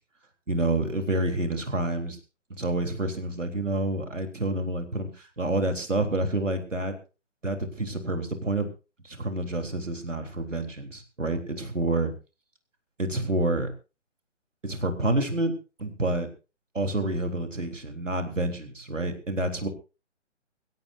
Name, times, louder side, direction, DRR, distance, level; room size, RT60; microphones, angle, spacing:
voice 1, 0.5-2.2 2.5-6.9 7.4-8.7 9.0-12.1 13.0-13.7 14.6-15.5 15.8-16.3 16.7-19.7, right 2 dB, 85° right, 5 dB, 3.8 m, -28 dB
22.0 x 16.5 x 2.7 m, 0.32 s
figure-of-eight pair, 140°, 36 cm